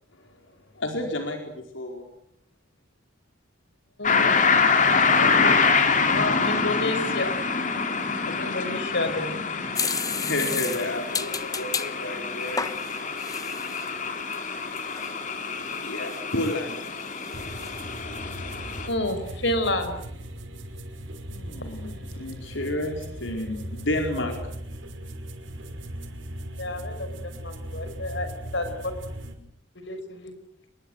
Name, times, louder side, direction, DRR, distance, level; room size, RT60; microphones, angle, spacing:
voice 1, 0.7-2.1 10.0-12.7 15.8-16.9 21.3-24.3, left 1 dB, 80° left, 3 dB, 4.7 m, -31 dB
voice 2, 4.0-4.5 5.2-5.6 6.1-7.4 8.3-9.8 18.9-19.9 26.6-28.3 28.5-28.9 29.8-30.3, left 2 dB, 65° left, 8 dB, 5.6 m, -30 dB
sound 1, 4.0-18.9, left 5 dB, 40° left, 3.3 m, -25 dB
sound 2, 9.8-11.9 12.4-13.9 14.3-14.4 14.8-15.2 15.7-16.9 17.2-17.8, left 5 dB, 20° left, 1.0 m, -32 dB
sound 3, 17.3-29.3, right 1 dB, 85° right, 5.6 m, -38 dB
28.0 x 22.5 x 8.0 m, 0.74 s
head